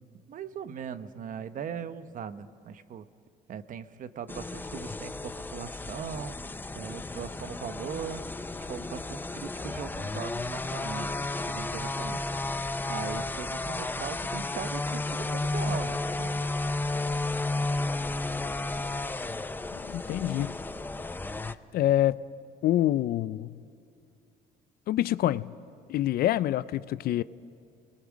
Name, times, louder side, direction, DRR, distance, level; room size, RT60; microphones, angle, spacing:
voice 1, 0.3-3.1 3.5-6.4 6.7-8.2 8.6-11.1 11.4-12.2 12.9-16.4, right 8 dB, 50° right, 1.0 m, -39 dB
sound 1, 4.3-21.5, left 2 dB, 10° left, 0.6 m, -33 dB
voice 2, 19.7-20.6 21.7-22.2 22.6-23.5 24.9-25.5 25.9-27.2, left 13 dB, 65° left, 0.5 m, -26 dB
29.5 x 20.0 x 6.3 m
cardioid pair, 110°, 17 cm